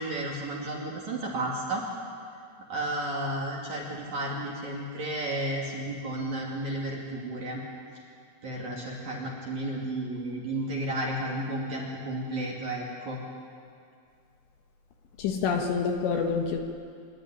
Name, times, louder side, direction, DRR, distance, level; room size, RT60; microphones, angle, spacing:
voice 1, 0.0-1.8 2.7-7.6 8.4-13.2, right 1 dB, 45° right, -3 dB, 3.2 m, -32 dB
voice 2, 15.2-16.6, left 5 dB, 70° left, 3 dB, 3.2 m, -27 dB
25.0 x 12.0 x 10.0 m, 2.4 s
omnidirectional pair, 5.7 m